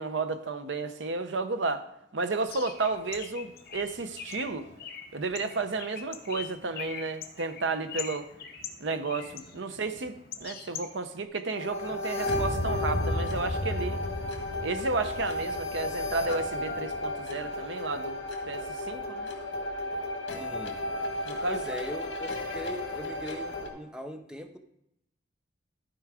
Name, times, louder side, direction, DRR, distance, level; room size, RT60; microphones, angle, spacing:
voice 1, 0.0-1.9 2.1-4.7 5.1-8.3 8.8-14.0 14.6-18.2 18.5-19.3 21.3-21.6, right 3 dB, 80° right, 9 dB, 0.7 m, -32 dB
Bird, 2.5-11.2, left 7 dB, 55° left, 0.9 m, -43 dB
sound 1, 11.5-23.7, left 1 dB, 70° left, 1.8 m, -33 dB
voice 2, 20.3-20.8 21.5-24.6, equal, 5° right, 6 dB, 0.6 m, -40 dB
13.0 x 4.6 x 4.8 m, 0.81 s
head